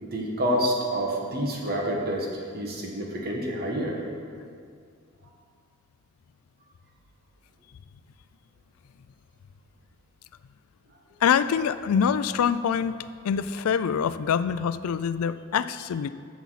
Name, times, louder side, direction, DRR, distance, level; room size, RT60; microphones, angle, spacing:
voice 1, 0.0-2.3 2.5-4.0, equal, 45° right, -1 dB, 1.6 m, -28 dB
voice 2, 11.2-16.1, left 7 dB, 90° left, 14 dB, 0.4 m, -25 dB
14.5 x 7.1 x 4.1 m, 2.2 s
head